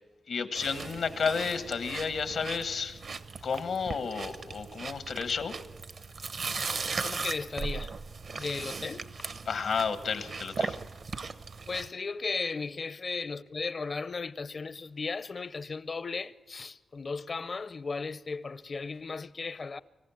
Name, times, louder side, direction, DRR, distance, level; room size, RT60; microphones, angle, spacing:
voice 1, 0.3-3.0 3.4-5.6 8.4-8.6 9.4-10.8, left 5 dB, 85° left, 1.2 m, -32 dB
sound 1, 0.5-11.9, right 4 dB, 60° right, 0.8 m, -38 dB
voice 2, 7.0-7.9 8.3-9.1 11.7-19.8, left 4 dB, 45° left, 0.5 m, -36 dB
25.5 x 15.0 x 7.1 m
wide cardioid pair, 105°, 0 cm